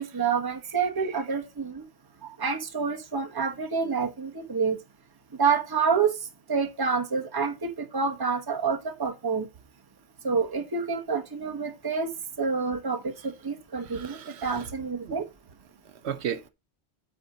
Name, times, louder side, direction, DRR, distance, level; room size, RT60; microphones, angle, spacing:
voice 1, 0.0-1.8 2.4-4.8 5.4-6.1 6.5-9.5 10.2-12.1 12.4-15.2, right 5 dB, 20° right, 1.0 m, -28 dB
voice 2, 0.7-1.2 13.2-13.3 13.8-14.7 15.0-15.2 15.8-16.5, right 8 dB, 75° right, 1.0 m, -37 dB
8.3 x 3.8 x 6.5 m
omnidirectional pair, 1.1 m